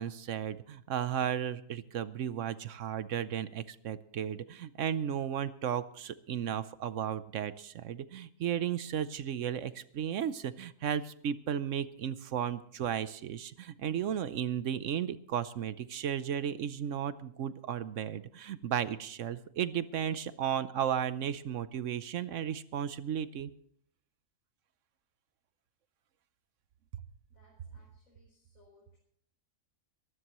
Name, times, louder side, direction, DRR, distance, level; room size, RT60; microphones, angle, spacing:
voice 1, 0.0-23.5, right 9 dB, 70° right, 14 dB, 1.0 m, -34 dB
voice 2, 27.3-29.0, left 3 dB, 80° left, -4 dB, 4.8 m, -65 dB
23.5 x 13.0 x 3.0 m, 0.64 s
omnidirectional pair, 1.4 m